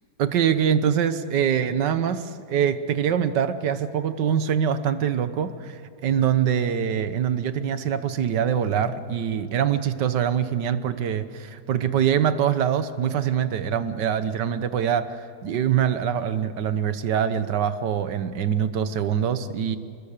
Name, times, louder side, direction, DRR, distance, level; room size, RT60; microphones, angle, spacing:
voice 1, 0.2-19.8, right 8 dB, 75° right, 11 dB, 1.7 m, -24 dB
29.0 x 21.0 x 6.7 m, 2.6 s
omnidirectional pair, 1.9 m